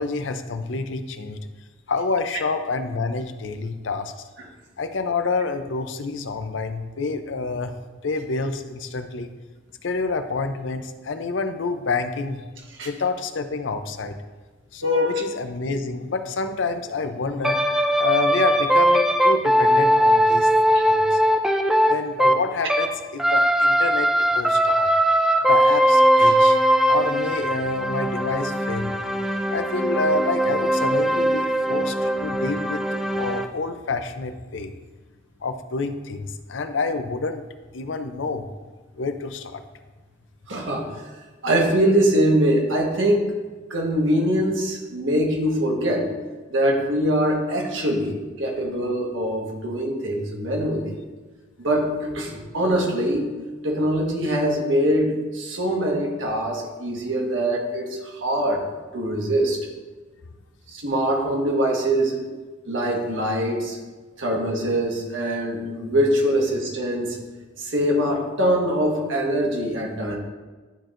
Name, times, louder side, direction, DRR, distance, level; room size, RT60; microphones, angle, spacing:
voice 1, 0.0-1.4 1.9-4.1 4.8-7.7 8.0-9.3 9.8-12.5 12.8-14.2 14.7-17.7 18.0-20.5 20.8-21.2 21.8-24.9 25.5-26.6 26.9-28.9 29.5-32.8 33.2-34.7 35.4-37.4 37.7-38.5 39.0-39.6, left 3 dB, 70° left, 8 dB, 0.5 m, -28 dB
voice 2, 14.8-15.2 20.7-20.8 40.5-40.9 41.4-43.3 43.7-46.1 46.5-50.9 51.6-53.3 53.6-58.7 58.9-59.7 60.7-62.2 62.6-63.8 64.2-67.2 67.6-70.2, equal, 75° right, 0 dB, 1.4 m, -23 dB
sound 1, 17.4-22.9 23.2-33.4, equal, 5° right, 0.4 m, -20 dB
12.0 x 4.4 x 2.5 m, 1.3 s
head